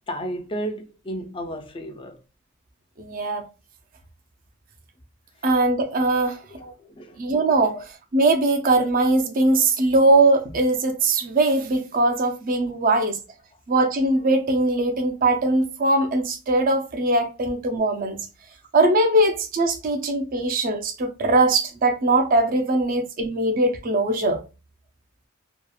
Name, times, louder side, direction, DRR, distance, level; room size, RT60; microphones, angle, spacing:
voice 1, 0.1-2.2 6.5-7.2, equal, 25° left, 0.4 m, -33 dB
voice 2, 3.0-3.4 5.4-6.4 7.2-7.8 8.1-13.2 13.7-18.2 18.7-24.4, right 2 dB, 40° right, 0.5 m, -21 dB
2.8 x 2.3 x 2.3 m
head